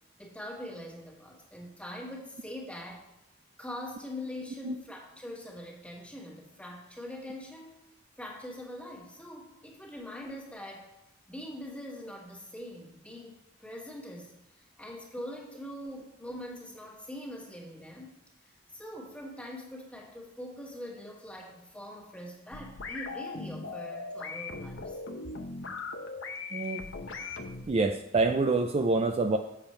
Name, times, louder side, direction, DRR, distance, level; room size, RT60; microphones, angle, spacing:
voice 1, 0.2-3.0 3.6-7.8 8.2-10.9 11.3-13.3 13.6-18.1 18.4-25.0, left 1 dB, 5° left, -2 dB, 1.6 m, -43 dB
sound 1, 22.5-27.6, left 3 dB, 70° left, 0.8 m, -39 dB
voice 2, 26.5-26.8 27.7-29.4, right 3 dB, 30° right, 6 dB, 0.4 m, -26 dB
7.2 x 6.9 x 4.4 m, 0.89 s
head